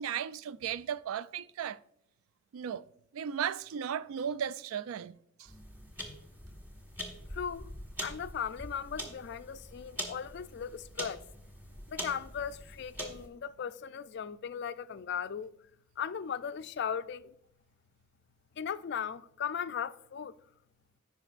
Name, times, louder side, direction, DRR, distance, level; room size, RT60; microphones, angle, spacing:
voice 1, 0.0-1.8 2.5-2.8 3.1-5.5, right 8 dB, 90° right, 0.3 m, -36 dB
sound 1, 5.5-13.3, equal, 10° right, 1.3 m, -44 dB
voice 2, 7.3-7.7 8.0-11.2 11.9-15.5 16.0-17.3 18.6-20.3, left 7 dB, 55° left, 0.3 m, -37 dB
15.0 x 5.3 x 2.4 m
head